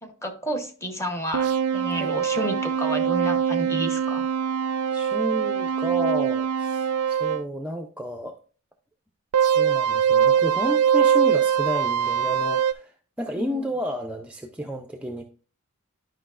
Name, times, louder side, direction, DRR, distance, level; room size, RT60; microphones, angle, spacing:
voice 1, 0.0-4.3 13.4-13.7, right 1 dB, 15° left, 0.9 m, -31 dB
sound 1, 1.3-7.4 9.3-12.7, right 8 dB, 85° right, 0.4 m, -23 dB
voice 2, 4.9-8.4 9.5-15.2, equal, 5° right, 0.4 m, -31 dB
11.5 x 5.4 x 2.4 m
head